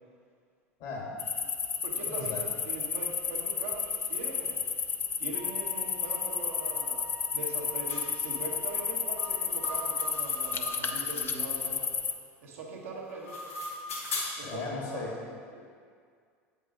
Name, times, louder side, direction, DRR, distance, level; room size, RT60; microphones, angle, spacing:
voice 1, 0.8-1.1 2.1-2.4 14.4-15.1, left 4 dB, 60° left, -1 dB, 1.4 m, -36 dB
sound 1, 1.2-12.1, left 6 dB, 30° left, 0.5 m, -32 dB
voice 2, 1.8-4.6 5.2-11.8 12.4-13.4 14.4-15.1 15.5-15.6, right 3 dB, 75° right, -3 dB, 1.2 m, -42 dB
Wind instrument woodwind instrument, 5.3-10.2, left 2 dB, 15° right, 0.7 m, -48 dB
sound 2, 7.9-8.1 9.2-11.3 13.0-14.5, left 2 dB, 80° left, 1.4 m, -38 dB
8.2 x 5.4 x 2.5 m, 2.1 s
hypercardioid pair, 75°, 8 cm